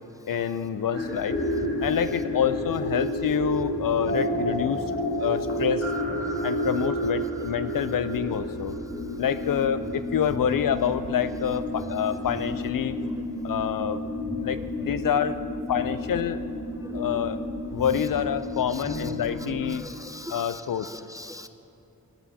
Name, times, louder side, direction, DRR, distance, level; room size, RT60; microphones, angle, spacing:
voice 1, 0.3-1.4 1.8-4.8 5.2-5.8 6.4-8.8 9.2-13.0 13.4-14.0 14.4-15.4 15.7-16.4 16.9-17.4 17.7-19.9 20.3-20.9, left 8 dB, 65° left, 12 dB, 0.5 m, -27 dB
sound 1, 0.9-19.8, left 1 dB, 40° left, 2.3 m, -31 dB
voice 2, 18.7-19.0 19.7-21.5, left 1 dB, 10° right, 9 dB, 0.3 m, -41 dB
18.0 x 10.5 x 2.8 m, 2.7 s
wide cardioid pair, 85°, 36 cm